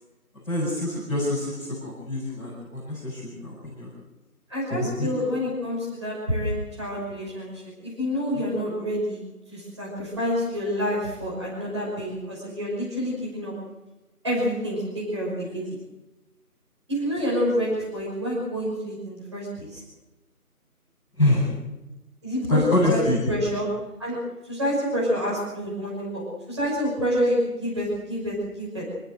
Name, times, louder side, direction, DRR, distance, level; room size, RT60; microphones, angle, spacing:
voice 1, 0.4-3.9 4.7-5.2 21.2-21.5 22.5-23.2, left 1 dB, ahead, -23 dB, 4.9 m, -25 dB
voice 2, 4.5-9.2 9.5-13.5 14.2-15.8 16.9-19.8 22.2-23.7 24.0-24.2 24.5-28.8, equal, 20° right, -5 dB, 5.7 m, -28 dB
26.5 x 15.0 x 7.9 m, 1.0 s
figure-of-eight pair, 175°, 46 cm